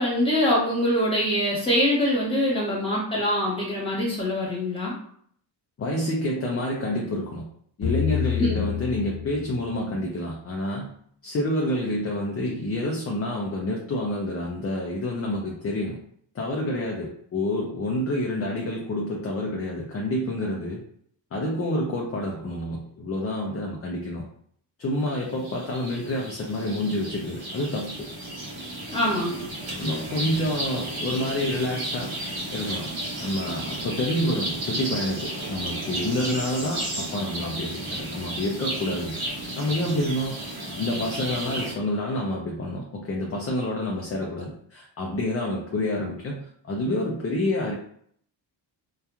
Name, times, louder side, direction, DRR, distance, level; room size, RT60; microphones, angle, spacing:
voice 1, 0.0-4.9 8.4-8.6 28.9-29.4, left 1 dB, 10° left, -5 dB, 1.2 m, -24 dB
voice 2, 5.8-7.4 7.8-10.9 11.2-16.0 16.3-20.8 21.3-24.2 24.8-28.1 29.8-32.2 32.5-32.9 33.2-39.1 39.6-40.4 40.8-47.7, left 1 dB, 30° left, -1 dB, 0.4 m, -28 dB
sound 1, 7.8-10.0, left 9 dB, 90° left, 0.9 m, -28 dB
sound 2, 25.1-41.7, right 1 dB, 55° right, 1.3 m, -33 dB
2.8 x 2.3 x 2.3 m, 0.64 s
cardioid pair, 100°, 46 cm